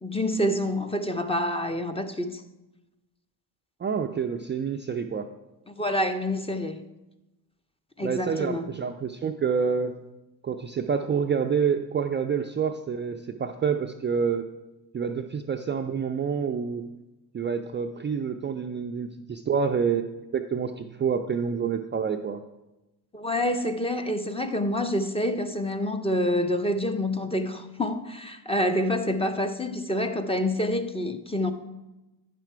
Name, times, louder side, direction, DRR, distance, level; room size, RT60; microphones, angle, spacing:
voice 1, 0.0-2.4 5.7-6.8 8.0-8.7 23.1-31.5, left 1 dB, 10° left, 0.7 m, -27 dB
voice 2, 3.8-5.3 8.0-9.9 10.4-14.5 14.9-16.8 17.3-20.0 20.3-22.4, right 6 dB, 25° right, 0.4 m, -27 dB
9.0 x 5.9 x 4.5 m
hypercardioid pair, 55°, 49 cm